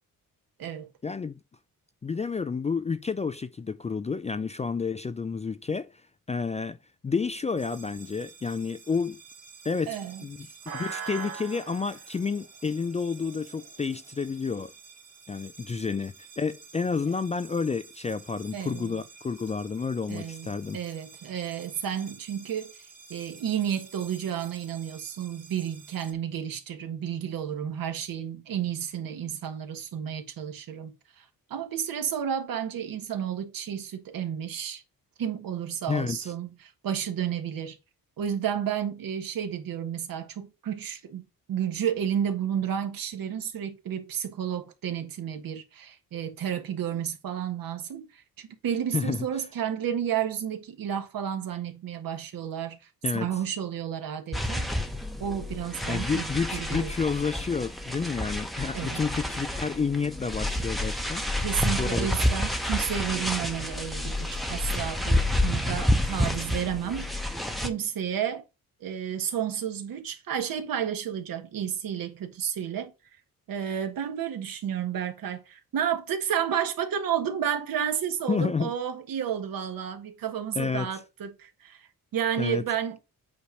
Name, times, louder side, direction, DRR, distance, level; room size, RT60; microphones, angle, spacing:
voice 1, 1.0-1.4 2.0-5.9 6.3-6.8 7.0-9.2 9.6-14.7 15.3-20.8 35.9-36.2 48.9-49.3 53.0-53.3 55.9-61.2 61.8-62.1 78.3-78.7 80.6-80.9 82.4-82.6, left 5 dB, 20° left, 0.3 m, -30 dB
sound 1, 7.6-26.1, right 6 dB, 50° right, 2.2 m, -47 dB
voice 2, 9.9-10.3 18.5-19.0 20.1-34.8 35.2-37.8 38.2-54.7 55.2-56.9 58.7-59.0 61.4-67.3 67.6-68.4 68.8-72.9 73.5-83.0, right 9 dB, 75° right, 1.6 m, -31 dB
sound 2, 54.3-67.7, left 1 dB, ahead, 0.8 m, -29 dB
8.4 x 3.0 x 5.2 m
cardioid pair, 140°, 35 cm